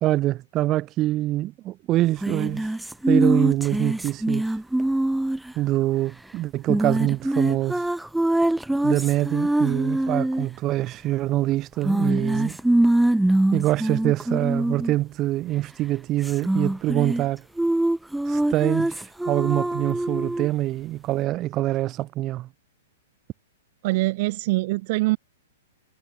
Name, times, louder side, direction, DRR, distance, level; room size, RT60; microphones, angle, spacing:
voice 1, 0.0-2.7 3.1-4.5 5.5-7.9 8.8-12.6 13.5-17.4 18.3-22.5, right 15 dB, 30° right, 1.2 m, -25 dB
sound 1, 2.2-5.5 6.7-10.5 11.8-14.9 16.2-17.2 17.6-20.5, right 1 dB, 5° right, 0.8 m, -23 dB
voice 2, 23.8-25.2, right 21 dB, 50° right, 0.9 m, -23 dB
hypercardioid pair, 120°, 0 cm